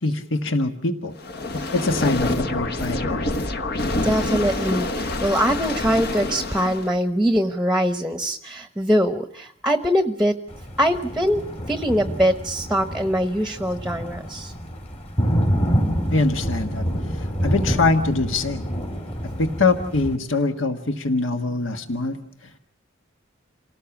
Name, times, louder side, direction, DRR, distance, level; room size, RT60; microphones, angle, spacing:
voice 1, 0.0-1.1 1.7-3.3 16.1-16.8 17.1-18.7 19.4-22.2, left 3 dB, 70° left, 5 dB, 1.5 m, -23 dB
sound 1, 1.2-7.0, left 2 dB, 55° left, 1.3 m, -26 dB
voice 2, 4.0-10.4 10.8-14.5, equal, 5° right, 8 dB, 1.0 m, -22 dB
Thunder, 10.5-20.2, equal, 35° left, 3.8 m, -27 dB
28.0 x 18.5 x 7.1 m, 0.67 s
head